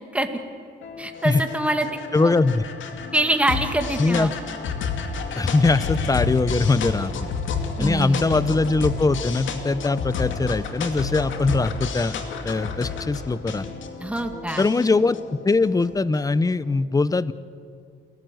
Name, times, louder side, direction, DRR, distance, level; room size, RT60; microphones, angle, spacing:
sound 1, 0.8-16.3, left 4 dB, 75° left, 2.4 m, -31 dB
voice 1, 1.0-1.9 2.2-2.3 3.1-4.3 7.8-8.5 14.0-14.6, right 1 dB, 5° right, 6 dB, 2.2 m, -24 dB
voice 2, 2.1-2.6 4.0-4.3 5.4-7.1 7.8-12.1 12.4-13.6 14.6-17.3, left 3 dB, 20° left, 17 dB, 0.8 m, -21 dB
28.5 x 16.0 x 7.9 m, 2.3 s
cardioid pair, 90°, 20 cm